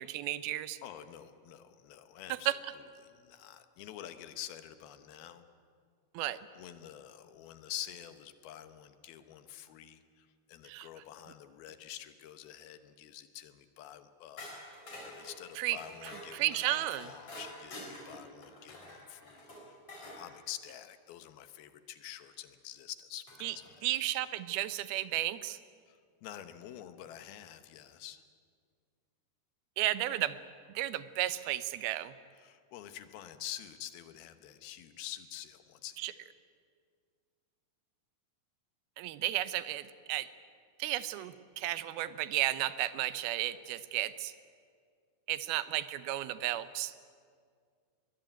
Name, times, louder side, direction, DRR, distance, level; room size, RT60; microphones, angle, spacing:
voice 1, 0.0-0.8 2.5-2.6 6.1-6.4 10.6-10.9 15.6-15.8 16.0-17.1 23.4-23.6 23.8-25.6 29.8-30.4 30.7-32.1 36.0-36.1 39.0-40.3 40.8-44.3 45.3-46.9, right 14 dB, 80° right, 14 dB, 2.6 m, -33 dB
voice 2, 0.8-2.5 3.0-5.4 6.6-23.9 25.9-28.2 32.4-36.1, left 12 dB, 80° left, 10 dB, 3.0 m, -47 dB
sound 1, 14.4-20.2 22.2-22.3 23.3-23.7, left 1 dB, 40° left, 5.9 m, -48 dB
22.5 x 20.5 x 9.1 m, 2.1 s
omnidirectional pair, 4.4 m